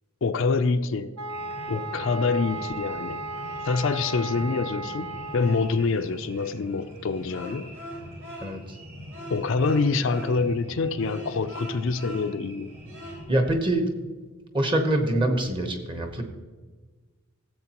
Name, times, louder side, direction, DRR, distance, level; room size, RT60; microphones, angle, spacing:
voice 1, 0.2-1.1 1.7-3.2 3.6-7.7 9.3-12.7, left 4 dB, 60° left, 0.4 m, -26 dB
sound 1, 1.2-5.9, right 2 dB, 80° right, 1.0 m, -35 dB
sound 2, 1.3-13.2, equal, 60° right, 3.5 m, -41 dB
voice 2, 13.3-13.9 14.5-16.2, right 1 dB, 20° right, 1.0 m, -24 dB
14.5 x 7.8 x 2.9 m
head